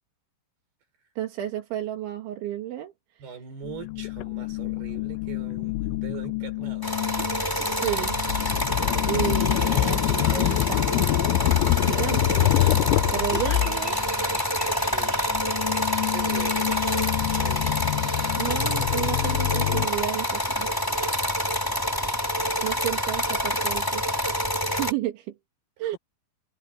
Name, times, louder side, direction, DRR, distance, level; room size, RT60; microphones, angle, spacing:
voice 1, 1.2-2.9 7.5-8.1 9.0-12.8 13.1-14.0 18.4-20.7 22.6-24.0 24.6-25.4 25.8-26.0, right 12 dB, 85° right, 4.7 m, -32 dB
voice 2, 3.2-7.3 7.6-8.1 8.7-9.3 13.6-13.7 14.8-15.3 16.1-16.8 17.4-17.8 21.5-21.6 25.8-26.0, right 8 dB, 60° right, 7.0 m, -42 dB
sound 1, 3.6-14.4 14.7-19.9, left 18 dB, 85° left, 3.0 m, -26 dB
sound 2, 6.8-24.9, left 1 dB, 5° left, 2.0 m, -27 dB
sound 3, 13.0-18.4, right 2 dB, 25° right, 5.5 m, -43 dB
omnidirectional pair, 5.2 m